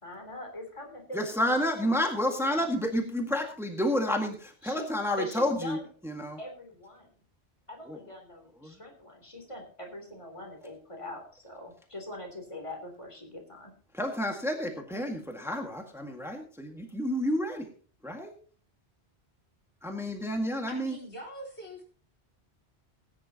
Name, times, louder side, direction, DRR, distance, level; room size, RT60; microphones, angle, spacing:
voice 1, 0.0-2.0 2.4-2.6 4.6-4.9 5.1-5.9 6.4-7.1 7.7-13.7, left 1 dB, 25° left, 3 dB, 3.3 m, -43 dB
voice 2, 1.1-5.8 6.0-6.4 7.9-8.0 8.6-8.7 13.9-17.7 18.0-18.3 19.8-20.9, left 1 dB, ahead, 3 dB, 1.8 m, -30 dB
voice 3, 20.7-21.8, equal, 75° left, 0 dB, 4.4 m, -43 dB
19.0 x 10.0 x 2.9 m, 0.43 s
omnidirectional pair, 1.1 m